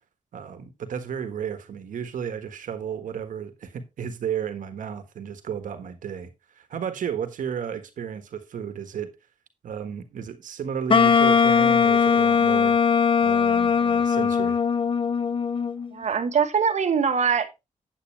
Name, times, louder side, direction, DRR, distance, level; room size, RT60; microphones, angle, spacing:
voice 1, 0.3-6.3 6.5-9.1 9.6-12.8 13.2-14.6, right 8 dB, 85° right, 1.5 m, -33 dB
Wind instrument woodwind instrument, 10.9-15.9, left 6 dB, 40° left, 0.7 m, -20 dB
voice 2, 15.9-17.6, right 6 dB, 60° right, 1.4 m, -23 dB
8.6 x 8.3 x 3.3 m
cardioid pair, 90°, 13 cm